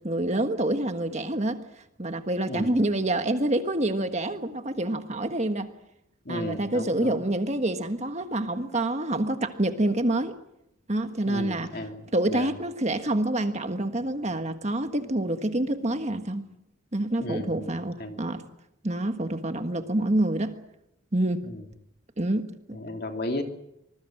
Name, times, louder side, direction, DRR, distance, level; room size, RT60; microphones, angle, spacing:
voice 1, 0.0-1.6 2.0-5.7 6.3-10.4 10.9-11.7 12.1-16.5 16.9-18.4 18.8-20.6 21.1-21.4 22.2-22.8, right 1 dB, 30° right, 7 dB, 1.5 m, -27 dB
voice 2, 6.2-7.3 11.2-12.5 17.2-17.7 18.0-18.2 21.4-21.6 22.7-23.4, left 1 dB, 45° left, 4 dB, 2.9 m, -34 dB
25.5 x 21.0 x 7.8 m, 0.82 s
head